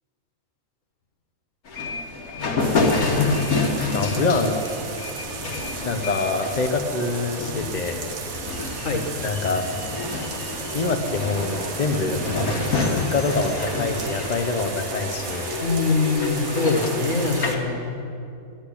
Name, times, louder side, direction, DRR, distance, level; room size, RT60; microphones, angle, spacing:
sound 1, 1.7-17.6, left 3 dB, 80° left, 1.8 m, -28 dB
sound 2, 2.6-17.5, right 5 dB, 70° right, 1.4 m, -35 dB
voice 1, 3.9-4.6 5.8-8.1 9.2-9.7 10.7-12.3 12.9-15.6, left 3 dB, 40° left, 5 dB, 0.7 m, -25 dB
voice 2, 15.6-17.8, left 4 dB, 60° left, 2 dB, 1.8 m, -23 dB
10.5 x 8.6 x 10.0 m, 2.6 s
omnidirectional pair, 1.5 m